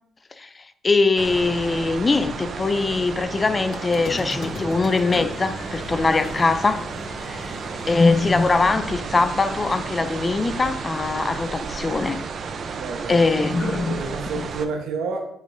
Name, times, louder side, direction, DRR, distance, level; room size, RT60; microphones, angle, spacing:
voice 1, 0.8-6.9 7.2-7.5 7.9-12.2 13.1-14.0 14.3-14.4, left 3 dB, 30° left, 0.5 m, -22 dB
sound 1, 1.2-14.7, right 5 dB, 55° right, 0.7 m, -33 dB
Squeak, 3.7-9.0, left 3 dB, 50° left, 0.8 m, -37 dB
voice 2, 7.4-7.9 12.8-13.2 13.5-15.3, right 4 dB, 85° right, 1.2 m, -31 dB
9.4 x 5.2 x 2.7 m
cardioid pair, 90°, 0 cm